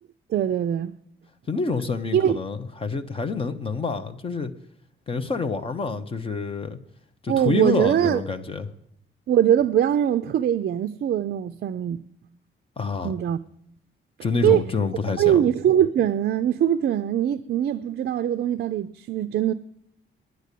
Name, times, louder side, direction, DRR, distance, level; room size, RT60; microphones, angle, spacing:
voice 1, 0.3-0.9 2.1-2.4 7.3-8.2 9.3-12.0 13.0-13.4 14.4-14.6 15.2-19.5, right 10 dB, 50° right, 0.4 m, -22 dB
voice 2, 1.5-4.5 5.1-6.8 7.2-8.7 12.8-13.2 14.2-15.4, left 4 dB, 25° left, 0.8 m, -27 dB
10.5 x 9.3 x 8.3 m
wide cardioid pair, 175°, 21 cm